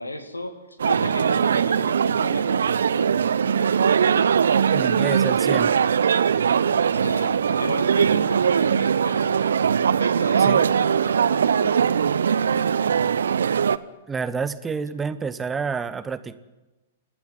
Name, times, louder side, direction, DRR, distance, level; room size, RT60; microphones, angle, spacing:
voice 1, 0.0-3.2 3.6-4.1 6.9-9.6 9.9-12.7, left 1 dB, 90° left, 9 dB, 2.2 m, -35 dB
sound 1, 0.8-13.8, right 7 dB, 70° right, 0.7 m, -21 dB
voice 2, 4.7-5.7 10.4-10.7 14.1-16.4, right 5 dB, 15° right, 13 dB, 1.0 m, -29 dB
28.0 x 12.0 x 9.7 m, 1.1 s
figure-of-eight pair, 105°, 0 cm